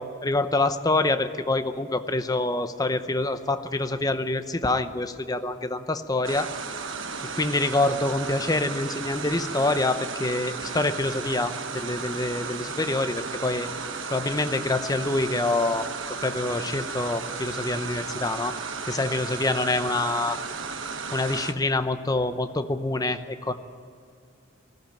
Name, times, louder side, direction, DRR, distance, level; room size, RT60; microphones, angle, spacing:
voice 1, 0.0-6.5 7.3-13.7 14.1-15.9 16.2-18.6 18.8-20.4 21.1-23.5, left 2 dB, 20° left, 9 dB, 0.8 m, -26 dB
sound 1, 6.2-21.5, right 5 dB, 65° right, 1.2 m, -34 dB
19.0 x 15.0 x 9.1 m, 2.4 s
head